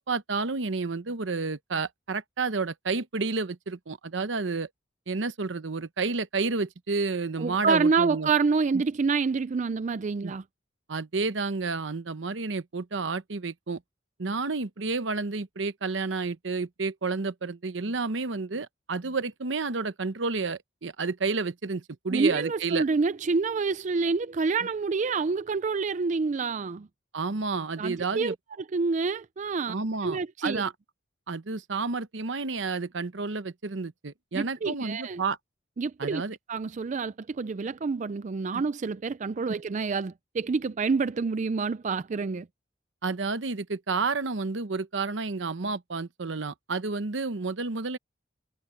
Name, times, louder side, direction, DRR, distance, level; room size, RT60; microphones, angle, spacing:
voice 1, 0.0-4.7 5.1-8.3 10.2-10.3 10.9-13.8 14.2-22.8 27.1-28.3 29.7-30.7 31.3-35.4 36.0-36.4 38.5-38.6 39.5-39.6 43.0-48.0, right 4 dB, 80° right, 0.9 m, -30 dB
voice 2, 7.4-10.4 22.1-26.9 27.8-28.4 28.7-29.7 30.0-30.7 34.3-35.2 35.8-36.2 36.5-42.5, right 4 dB, 40° right, 0.4 m, -27 dB
head